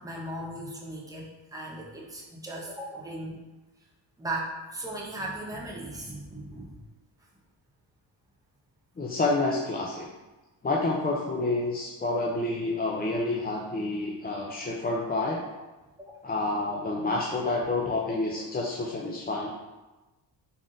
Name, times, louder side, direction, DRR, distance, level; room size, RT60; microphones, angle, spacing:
voice 1, 0.0-3.4 4.2-6.8 16.0-16.1, right 1 dB, 5° right, -3 dB, 0.9 m, -37 dB
voice 2, 9.0-10.1 10.6-15.4 16.2-19.5, left 2 dB, 20° left, -2 dB, 0.4 m, -28 dB
3.8 x 3.6 x 2.5 m, 1.1 s
supercardioid pair, 55°, 50 cm